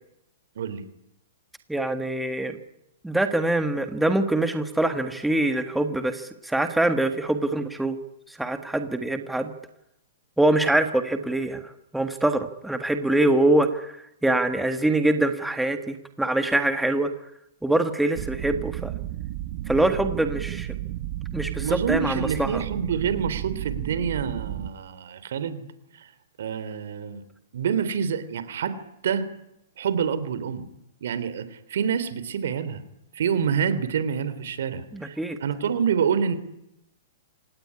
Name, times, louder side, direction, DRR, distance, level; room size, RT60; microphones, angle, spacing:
voice 1, 1.7-2.6 3.0-8.0 8.4-9.5 10.4-13.9 14.2-17.1 17.6-18.9 19.7-20.7 21.3-22.6 34.9-35.4, right 1 dB, 5° right, 8 dB, 1.7 m, -24 dB
sound 1, 18.1-24.7, right 14 dB, 50° right, 1.4 m, -33 dB
voice 2, 21.6-25.6 25.9-26.1 26.4-27.2 27.5-28.8 29.0-29.3 29.8-30.7 31.0-32.8 33.1-36.4, right 7 dB, 75° right, 13 dB, 3.4 m, -27 dB
26.0 x 18.5 x 9.9 m, 0.82 s
hypercardioid pair, 145°, 0 cm